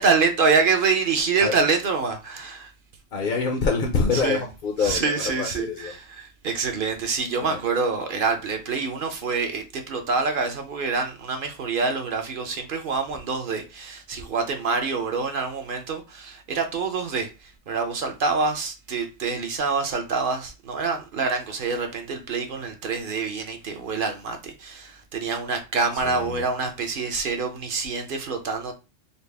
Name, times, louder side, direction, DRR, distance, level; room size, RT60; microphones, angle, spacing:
voice 1, 0.0-2.7 4.1-4.4 4.8-28.7, right 4 dB, 50° right, 0.7 m, -26 dB
voice 2, 3.1-5.9 7.4-7.6 26.0-26.4, left 4 dB, 55° left, 0.6 m, -26 dB
4.0 x 2.0 x 3.3 m
omnidirectional pair, 1.3 m